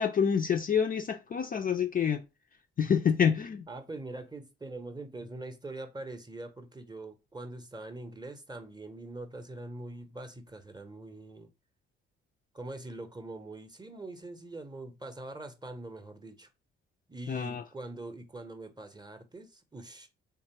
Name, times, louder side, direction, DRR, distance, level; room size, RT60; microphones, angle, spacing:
voice 1, 0.0-2.2 2.8-3.7 17.3-17.6, left 7 dB, 30° left, 0.4 m, -27 dB
voice 2, 3.7-11.5 12.5-16.5 17.1-20.1, right 2 dB, 15° right, 0.8 m, -43 dB
3.6 x 3.0 x 2.9 m
figure-of-eight pair, 40°, 31 cm